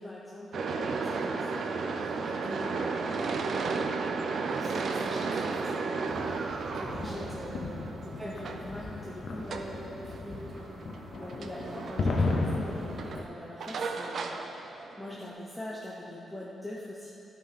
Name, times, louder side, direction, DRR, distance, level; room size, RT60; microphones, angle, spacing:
voice 1, 0.0-3.7 4.4-5.7 6.7-9.5 11.2-14.6 15.0-17.1, left 1 dB, 10° left, -5 dB, 0.8 m, -43 dB
sound 1, 0.5-15.3, right 4 dB, 50° right, 0.6 m, -34 dB
sound 2, 6.1-13.2, left 3 dB, 45° left, 0.7 m, -35 dB
voice 2, 6.8-7.3 8.2-8.3 9.4-10.9 11.3-11.5, right 1 dB, 15° right, -6 dB, 2.0 m, -44 dB
13.0 x 6.9 x 4.2 m, 2.9 s
wide cardioid pair, 160°, 0 cm